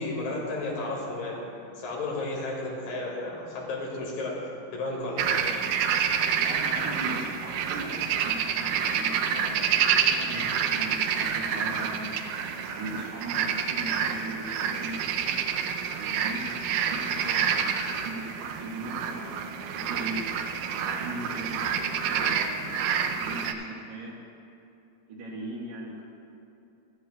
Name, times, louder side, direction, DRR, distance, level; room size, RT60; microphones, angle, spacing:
voice 1, 0.0-1.4 1.8-4.5 4.7-5.4, left 2 dB, 85° left, -2 dB, 3.5 m, -33 dB
sound 1, 5.2-23.5, right 7 dB, 80° right, 2.0 m, -28 dB
voice 2, 6.4-9.7 10.2-12.1 12.6-15.0 15.8-17.5 17.9-20.2 20.8-22.7 23.0-24.1 25.1-26.0, right 2 dB, 60° right, -4 dB, 2.6 m, -39 dB
15.0 x 13.5 x 2.3 m, 2.7 s
omnidirectional pair, 3.8 m